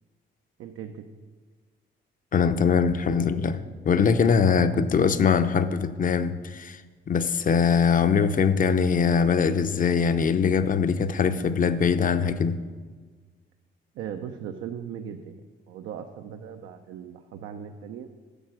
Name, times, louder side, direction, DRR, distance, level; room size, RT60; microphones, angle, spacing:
voice 1, 0.6-1.1 13.9-15.4 15.7-18.1, right 8 dB, 85° right, 5 dB, 0.6 m, -38 dB
voice 2, 2.3-6.8 7.1-12.6, left 6 dB, 40° left, 11 dB, 0.7 m, -22 dB
10.0 x 7.3 x 6.3 m, 1.5 s
cardioid pair, 90°, 20 cm